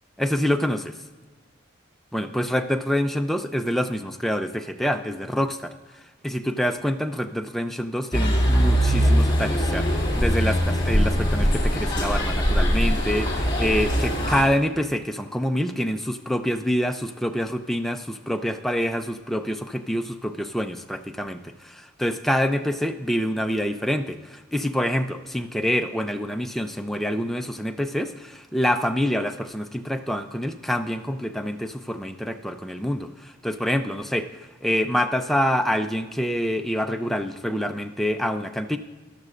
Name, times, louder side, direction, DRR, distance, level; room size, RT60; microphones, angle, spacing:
voice 1, 0.2-0.9 2.1-5.7 6.2-38.8, equal, ahead, 6 dB, 0.4 m, -26 dB
sound 1, 8.1-14.4, equal, 25° left, 2.0 m, -21 dB
14.0 x 12.0 x 2.5 m, 1.3 s
head